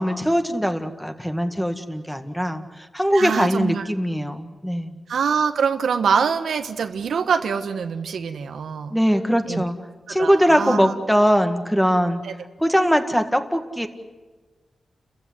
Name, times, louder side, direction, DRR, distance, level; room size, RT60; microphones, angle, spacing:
voice 1, 0.0-5.0 8.9-9.8 10.1-12.2 12.6-13.9, equal, ahead, 7 dB, 1.9 m, -21 dB
voice 2, 3.1-3.8 5.1-9.0 9.5-9.6 10.1-10.9 12.2-12.3, right 6 dB, 90° right, 8 dB, 1.3 m, -24 dB
30.0 x 15.0 x 9.7 m, 1.3 s
wide cardioid pair, 100°, 0 cm